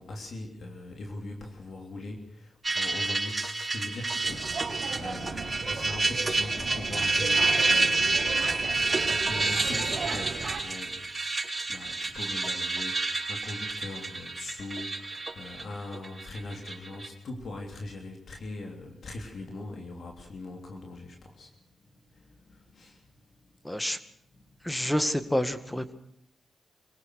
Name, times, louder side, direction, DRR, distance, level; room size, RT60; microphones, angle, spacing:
voice 1, 0.0-8.8 9.0-11.0 11.7-21.5 22.1-23.1 23.6-23.7 24.3-24.8, left 2 dB, 70° left, 2 dB, 3.4 m, -41 dB
sound 1, 2.6-17.1, right 3 dB, 25° right, 5.9 m, -29 dB
sound 2, 4.2-10.6, right 5 dB, 60° right, 2.4 m, -37 dB
voice 2, 23.6-24.0 24.6-25.9, equal, 10° left, 10 dB, 2.0 m, -28 dB
25.0 x 17.5 x 6.6 m, 0.71 s
cardioid pair, 65°, 0 cm